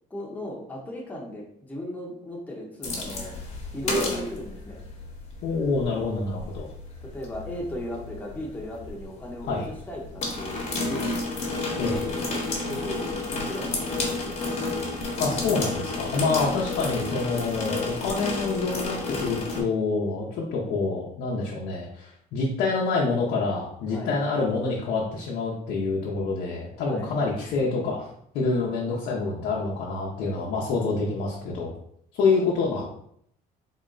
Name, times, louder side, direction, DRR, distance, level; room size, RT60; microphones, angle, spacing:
voice 1, 0.1-3.4 3.7-4.8 7.0-11.2 12.0-14.4 23.9-24.2 26.8-27.1, equal, 10° left, -3 dB, 0.8 m, -36 dB
sound 1, 2.8-19.6, left 3 dB, 40° left, 1.0 m, -31 dB
voice 2, 5.4-6.7 9.5-9.7 11.8-12.0 15.2-28.1 28.3-31.7 32.1-32.9, left 4 dB, 80° left, -4 dB, 0.8 m, -27 dB
3.9 x 2.1 x 3.8 m, 0.70 s
cardioid pair, 110°, 17 cm